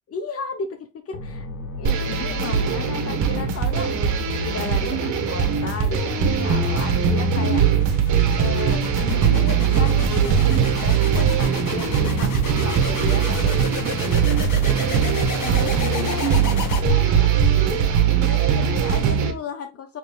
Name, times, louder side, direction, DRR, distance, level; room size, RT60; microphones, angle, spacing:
voice 1, 0.1-1.5 1.8-7.6 8.4-13.8 14.9-15.1 15.4-20.0, left 5 dB, 50° left, 7 dB, 0.9 m, -34 dB
sound 1, 1.1-17.2, left 6 dB, 75° left, 1.8 m, -31 dB
sound 2, 1.8-19.3, right 8 dB, 75° right, 1.3 m, -21 dB
6.4 x 3.1 x 2.3 m, 0.27 s
cardioid pair, 90°, 30 cm